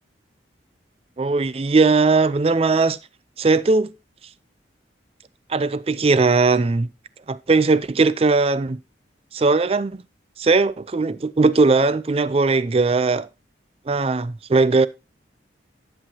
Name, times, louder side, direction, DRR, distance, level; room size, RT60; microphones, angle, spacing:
voice 1, 1.2-3.0 3.4-3.9 5.5-6.9 7.3-8.8 9.3-10.0 10.4-13.3 13.9-14.9, right 3 dB, 30° right, 0.4 m, -19 dB
11.5 x 7.5 x 2.7 m
head